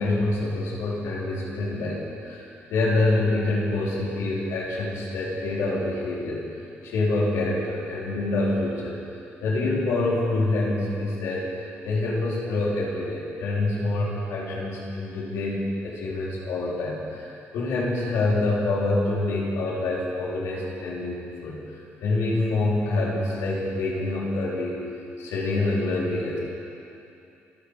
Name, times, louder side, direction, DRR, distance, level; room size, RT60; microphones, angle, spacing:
voice 1, 0.0-6.4 6.8-9.0 9.4-11.5 11.8-21.6 22.0-24.8 25.2-26.4, left 2 dB, 90° left, -5 dB, 4.1 m, -26 dB
28.0 x 10.5 x 5.0 m, 2.7 s
cardioid pair, 165°, 5 cm